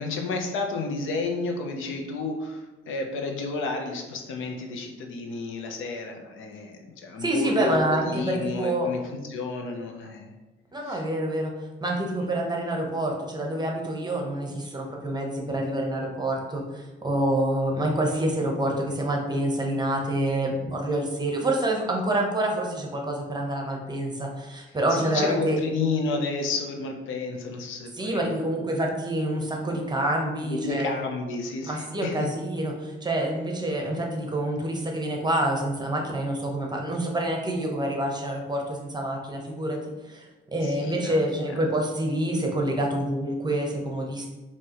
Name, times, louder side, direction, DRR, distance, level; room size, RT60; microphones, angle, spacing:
voice 1, 0.0-9.0 9.3-10.3 10.8-11.0 24.9-28.3 30.4-32.3 40.6-41.2 41.5-41.6, left 3 dB, 80° left, 3 dB, 0.7 m, -31 dB
voice 2, 7.2-8.9 10.7-11.5 11.8-25.6 27.9-31.0 31.6-39.8 40.1-44.3, right 1 dB, 20° right, 1 dB, 0.9 m, -27 dB
4.6 x 2.9 x 2.9 m, 1.1 s
cardioid pair, 90°, 20 cm